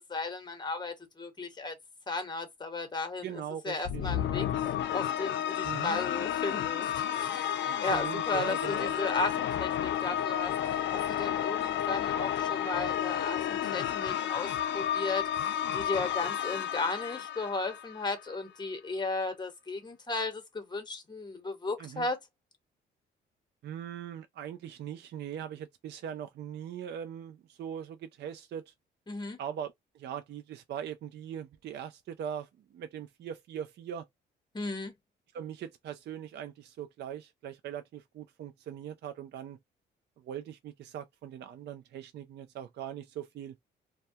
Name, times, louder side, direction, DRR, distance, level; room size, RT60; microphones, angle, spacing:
voice 1, 0.1-1.7 2.1-4.5 4.9-7.4 7.8-10.5 10.9-22.2 29.1-29.4 34.5-34.9, left 3 dB, 20° left, 1.0 m, -35 dB
voice 2, 3.2-4.1 5.6-5.9 7.6-9.0 21.8-22.1 23.6-28.7 29.4-34.1 35.3-39.6 40.2-43.6, right 9 dB, 60° right, 0.4 m, -41 dB
sound 1, 3.8-18.2, left 10 dB, 65° left, 0.4 m, -31 dB
2.2 x 2.2 x 2.7 m
cardioid pair, 90°, 20 cm